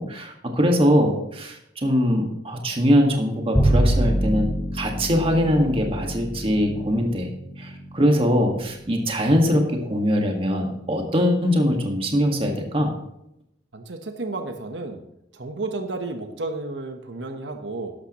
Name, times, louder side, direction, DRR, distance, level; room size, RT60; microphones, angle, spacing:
voice 1, 0.0-7.3 7.6-12.9, equal, 30° right, 2 dB, 1.8 m, -22 dB
Bowed string instrument, 3.5-10.0, right 1 dB, 10° left, 1.2 m, -26 dB
voice 2, 13.7-15.0 15.3-17.9, right 2 dB, 90° right, 6 dB, 1.1 m, -32 dB
12.5 x 11.5 x 3.1 m, 0.81 s
head